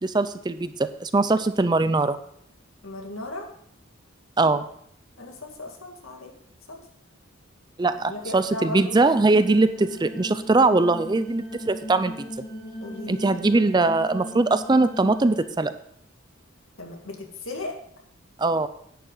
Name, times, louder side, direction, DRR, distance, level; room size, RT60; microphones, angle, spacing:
voice 1, 0.0-2.2 4.4-4.7 7.8-12.3 13.1-15.7 18.4-18.7, right 3 dB, 20° right, 12 dB, 0.4 m, -21 dB
voice 2, 2.8-3.5 5.2-6.4 6.7-6.8 8.1-9.0 12.8-13.4 16.8-17.8, left 2 dB, 85° left, 2 dB, 2.1 m, -36 dB
sound 1, 9.0-15.5, equal, 25° left, 1.6 m, -38 dB
11.0 x 9.2 x 4.0 m, 0.66 s
head